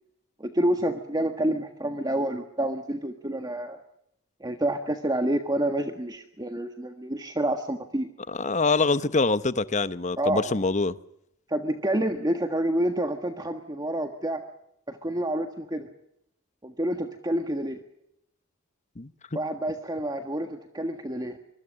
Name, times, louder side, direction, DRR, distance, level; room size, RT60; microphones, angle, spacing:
voice 1, 0.4-3.8 4.4-8.1 10.2-10.5 11.5-14.4 14.9-15.9 16.6-17.8 19.3-21.4, right 1 dB, 20° right, 1.5 m, -28 dB
voice 2, 8.3-10.9 19.0-19.1, left 3 dB, 35° left, 0.9 m, -24 dB
24.5 x 23.5 x 6.5 m
head